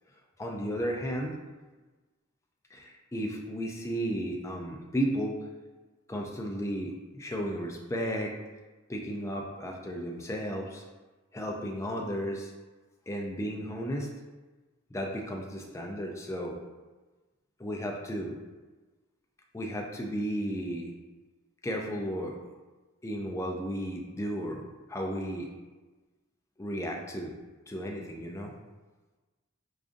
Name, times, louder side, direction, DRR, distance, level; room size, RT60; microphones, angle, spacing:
voice 1, 0.4-1.6 2.7-5.4 6.1-8.4 8.9-10.8 11.3-12.5 13.1-14.1 14.9-16.6 17.6-18.3 19.5-20.9 21.6-22.4 23.0-24.6 24.9-25.5 26.6-27.3 27.7-28.5, equal, 15° left, 1 dB, 0.3 m, -34 dB
5.0 x 2.4 x 2.5 m, 1.2 s
head